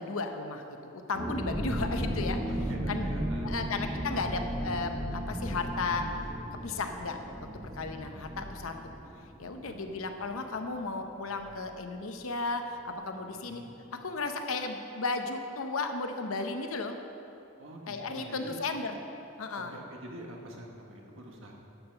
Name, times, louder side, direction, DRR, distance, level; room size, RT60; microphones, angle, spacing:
voice 1, 0.0-3.1 3.4-6.1 6.6-7.2 7.7-8.9 9.4-13.6 14.0-17.0 17.9-18.9 19.4-19.8, left 3 dB, 70° left, 6 dB, 0.8 m, -34 dB
sound 1, 1.1-10.6 10.8-10.9 11.2-11.5, equal, 20° right, 0.8 m, -35 dB
voice 2, 2.4-3.5 9.6-10.0 10.3-10.4 13.3-13.7 17.6-18.6 19.6-21.5, right 1 dB, 60° right, 0 dB, 1.4 m, -47 dB
11.0 x 5.7 x 6.9 m, 2.8 s
head